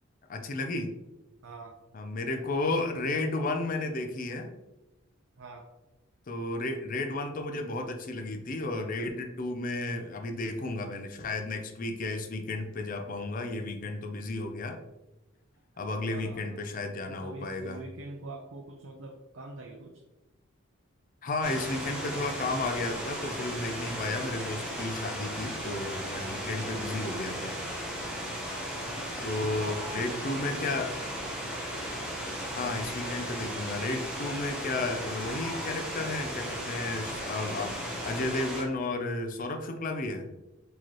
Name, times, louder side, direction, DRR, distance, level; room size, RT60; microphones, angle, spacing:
voice 1, 0.3-0.9 1.9-4.5 6.3-14.8 15.8-17.8 21.2-27.5 29.2-30.9 32.5-40.3, left 2 dB, 40° left, 5 dB, 0.4 m, -33 dB
voice 2, 1.4-1.7 5.4-5.6 12.5-12.7 15.7-16.6 17.1-20.0 29.4-30.0 30.3-31.1, right 2 dB, 65° right, 2 dB, 0.5 m, -44 dB
sound 1, 21.4-38.6, equal, 5° right, 0.8 m, -36 dB
4.6 x 3.0 x 2.9 m, 1.0 s
head